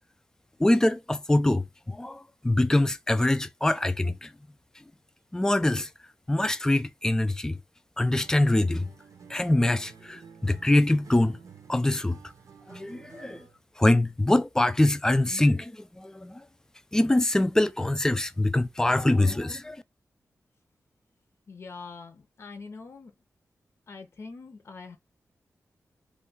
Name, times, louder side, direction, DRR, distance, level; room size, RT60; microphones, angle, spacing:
voice 1, 0.6-4.3 5.3-5.9 6.3-7.6 8.0-8.9 9.3-11.4 11.7-12.2 12.7-13.4 13.8-16.4 16.9-19.8, left 1 dB, 10° left, 0.4 m, -24 dB
Acoustic guitar, 8.2-13.6, right 6 dB, 70° right, 0.6 m, -51 dB
voice 2, 21.5-23.1 23.9-25.0, left 4 dB, 50° left, 0.6 m, -43 dB
3.1 x 2.3 x 3.9 m
wide cardioid pair, 100°, 6 cm